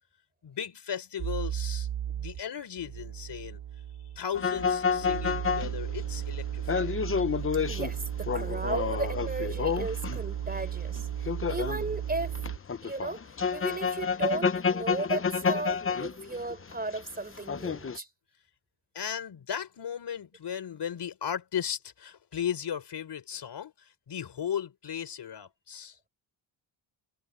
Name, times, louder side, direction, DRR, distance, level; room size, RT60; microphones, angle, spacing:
voice 1, 0.4-3.6 4.2-7.0 18.9-26.0, left 8 dB, 60° left, 4.4 m, -36 dB
sound 1, 1.2-2.4 2.8-12.6, right 10 dB, 75° right, 3.9 m, -35 dB
sound 2, 4.3-10.4 11.0-17.0 17.4-18.0, left 6 dB, 25° left, 1.0 m, -30 dB
voice 2, 7.7-11.1 11.5-12.4 12.8-18.1, right 2 dB, 20° right, 4.2 m, -35 dB
cardioid pair, 80°, 46 cm